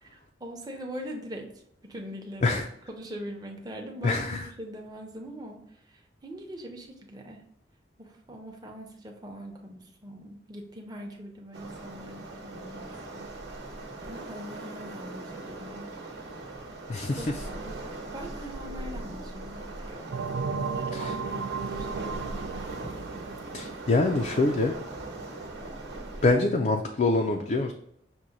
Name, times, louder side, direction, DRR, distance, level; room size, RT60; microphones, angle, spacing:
voice 1, 0.0-1.5 1.8-2.6 2.9-7.4 8.0-13.3 14.1-15.9 17.2-20.2 20.6-22.7, equal, 20° right, 1 dB, 0.7 m, -42 dB
voice 2, 4.0-4.4 16.9-17.2 20.9-21.1 23.5-24.7 26.2-27.7, left 3 dB, 40° left, 2 dB, 0.3 m, -25 dB
Waves surf, 11.5-26.3, right 2 dB, 70° right, 1.0 m, -40 dB
sound 1, 20.1-24.5, right 5 dB, 85° right, 0.4 m, -34 dB
6.0 x 2.1 x 3.9 m, 0.74 s
head